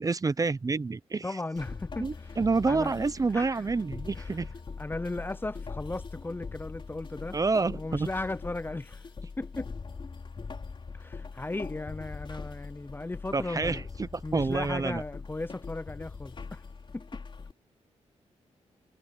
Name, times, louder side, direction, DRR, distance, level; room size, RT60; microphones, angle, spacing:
voice 1, 0.0-1.4 2.0-4.5 7.3-8.1 13.3-15.0, right 4 dB, 30° right, 0.7 m, -28 dB
voice 2, 1.2-2.3 2.7-3.1 3.3-3.6 4.2-4.4 4.8-7.4 7.7-9.1 9.4-9.7 10.9-13.8 14.2-16.6 16.9-17.2, left 2 dB, 15° left, 0.7 m, -36 dB
sound 1, 1.6-17.5, left 4 dB, 40° left, 4.3 m, -42 dB
cardioid pair, 100°, 12 cm